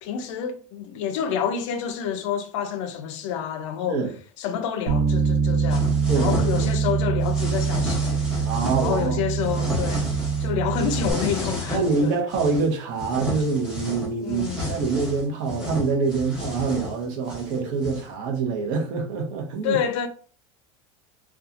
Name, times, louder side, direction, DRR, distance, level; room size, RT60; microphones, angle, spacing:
voice 1, 0.0-4.1 4.4-8.3 8.8-12.2 14.2-14.6 19.6-20.1, left 8 dB, 65° left, 0.5 m, -28 dB
Bass guitar, 4.9-11.1, right 6 dB, 25° right, 0.3 m, -24 dB
sound 1, 5.7-6.9 7.2-9.1 9.4-10.5 10.7-12.7 13.0-18.1, left 1 dB, 5° right, 0.8 m, -32 dB
voice 2, 6.1-6.5 8.4-9.2 11.7-19.8, right 4 dB, 50° right, 0.7 m, -25 dB
2.7 x 2.3 x 2.4 m
supercardioid pair, 175°, 16 cm